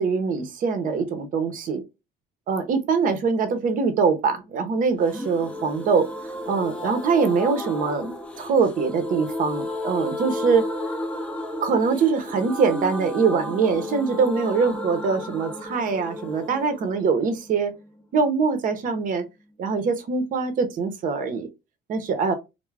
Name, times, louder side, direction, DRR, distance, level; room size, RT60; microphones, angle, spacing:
voice 1, 0.0-1.8 2.5-6.1 6.5-10.6 11.6-17.7 18.1-19.2 19.6-21.5 21.9-22.3, right 5 dB, 55° right, 0.7 m, -23 dB
sound 1, 5.0-18.7 18.9-19.0 19.2-19.3, left 1 dB, 5° left, 0.6 m, -33 dB
2.3 x 2.1 x 3.2 m
cardioid pair, 110°, 17 cm